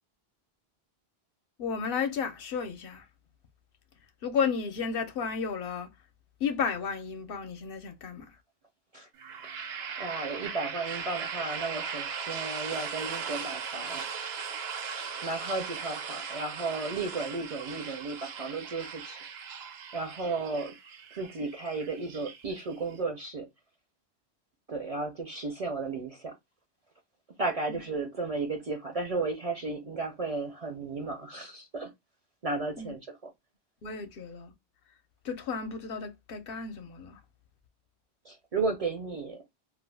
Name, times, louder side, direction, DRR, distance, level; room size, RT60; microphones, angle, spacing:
voice 1, 1.6-3.0 4.2-5.9 6.4-8.3 27.7-27.8 32.8-32.9 33.8-34.5 35.2-37.2, left 6 dB, 65° left, 0.8 m, -33 dB
sound 1, 9.2-23.0, right 6 dB, 80° right, 0.9 m, -38 dB
voice 2, 10.0-14.0 15.2-19.2 19.9-20.7 21.1-23.5 24.7-26.4 27.4-31.9 32.4-33.2 38.2-39.4, right 3 dB, 50° right, 0.5 m, -34 dB
2.3 x 2.2 x 3.3 m
omnidirectional pair, 1.0 m